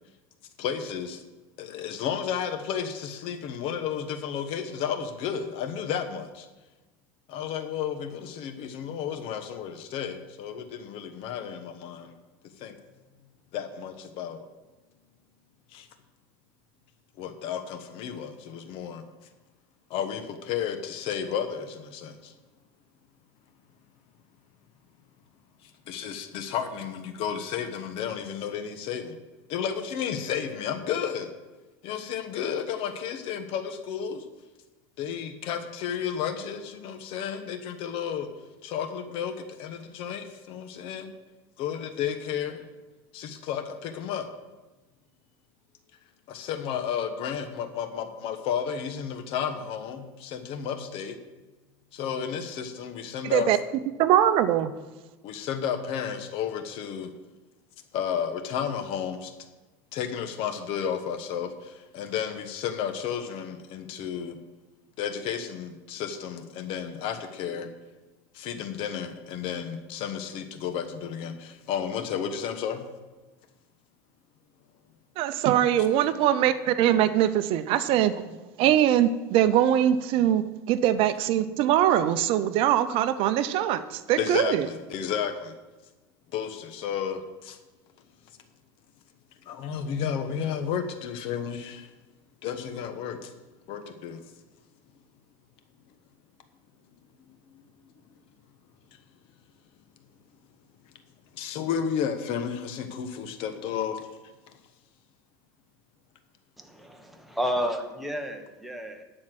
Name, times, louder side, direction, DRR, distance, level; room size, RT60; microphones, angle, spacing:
voice 1, 0.6-1.2 1.6-6.5 7.3-12.1 12.6-12.7 13.5-14.4 15.7-15.9 17.2-19.0 19.9-22.3 25.6-29.2 29.5-31.3 31.8-34.2 35.0-38.3 38.6-41.1 41.6-42.6 43.1-44.3 46.3-51.2 51.9-53.5 55.2-57.1 57.9-59.3 59.9-64.4 65.0-67.7 68.3-72.8 84.2-85.5 86.3-87.6 89.4-91.9 92.4-93.3 93.7-94.2 97.5-97.6 101.3-104.1, left 8 dB, 55° left, 8 dB, 1.2 m, -32 dB
voice 2, 53.2-53.6 54.0-54.7 75.2-78.2 78.6-84.7, right 11 dB, 55° right, 12 dB, 0.6 m, -22 dB
voice 3, 106.6-109.0, equal, ahead, 3 dB, 1.4 m, -31 dB
12.0 x 4.4 x 7.8 m, 1.2 s
supercardioid pair, 105°, 11 cm